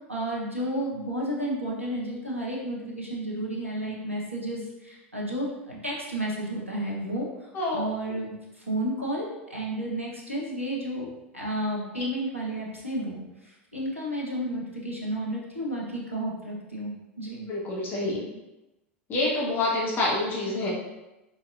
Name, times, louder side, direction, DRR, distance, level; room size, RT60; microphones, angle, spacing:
voice 1, 0.1-11.1 11.3-16.9 17.2-17.5, right 1 dB, 90° right, -4 dB, 0.9 m, -32 dB
voice 2, 7.5-7.9 12.0-12.1 17.5-18.3 19.1-20.7, left 2 dB, 30° left, -4 dB, 1.1 m, -27 dB
4.0 x 4.0 x 2.6 m, 0.99 s
figure-of-eight pair, 85°, 7 cm